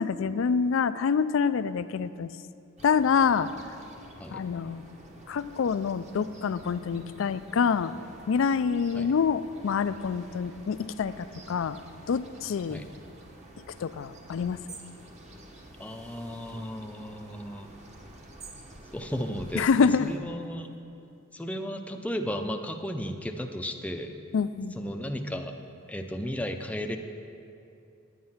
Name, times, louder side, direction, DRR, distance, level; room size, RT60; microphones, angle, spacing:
voice 1, 0.0-2.3 2.8-3.5 4.3-4.8 5.3-7.9 8.3-11.8 12.1-12.8 13.8-14.6 19.5-20.1 24.3-24.8, left 6 dB, 65° left, 14 dB, 0.4 m, -26 dB
sound 1, 2.8-20.2, right 1 dB, 35° right, 1.0 m, -49 dB
voice 2, 15.8-17.7 18.9-20.7 21.3-24.1 24.8-25.5 25.9-27.0, equal, 5° left, 4 dB, 0.5 m, -34 dB
9.6 x 9.3 x 5.6 m, 2.5 s
head